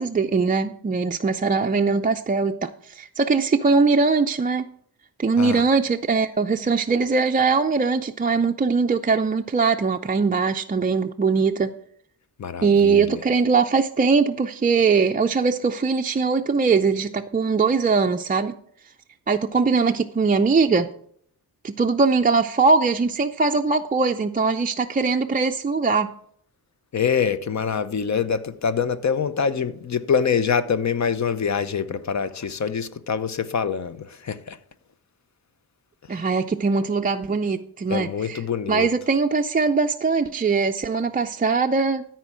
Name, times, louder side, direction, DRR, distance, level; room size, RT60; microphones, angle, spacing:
voice 1, 0.0-4.7 5.2-11.7 12.6-18.6 19.3-20.9 21.6-26.1 36.1-38.4 38.7-42.1, right 4 dB, 25° right, 0.4 m, -21 dB
voice 2, 12.4-13.2 26.9-34.6 36.1-36.2 37.9-38.9, left 6 dB, 45° left, 0.8 m, -25 dB
13.5 x 4.5 x 6.1 m
cardioid pair, 80°, 38 cm